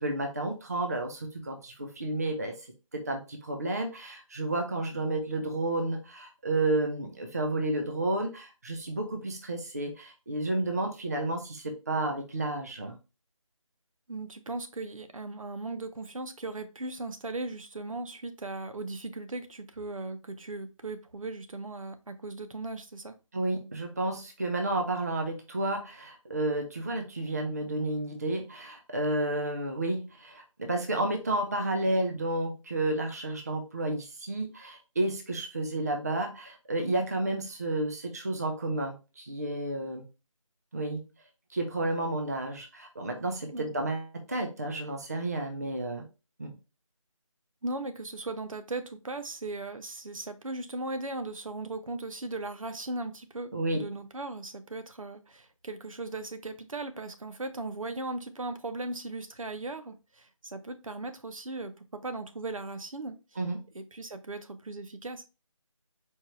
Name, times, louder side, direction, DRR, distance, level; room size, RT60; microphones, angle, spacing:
voice 1, 0.0-2.5 2.9-13.0 23.3-40.0 40.7-41.0 41.5-46.0 46.4-46.5 53.5-53.9 63.4-63.6, right 2 dB, 30° right, 3 dB, 0.5 m, -31 dB
voice 2, 14.1-23.1 43.5-43.7 47.6-63.2 63.7-65.3, right 2 dB, 75° right, 9 dB, 0.7 m, -38 dB
4.4 x 2.4 x 3.0 m, 0.29 s
figure-of-eight pair, 165°, 17 cm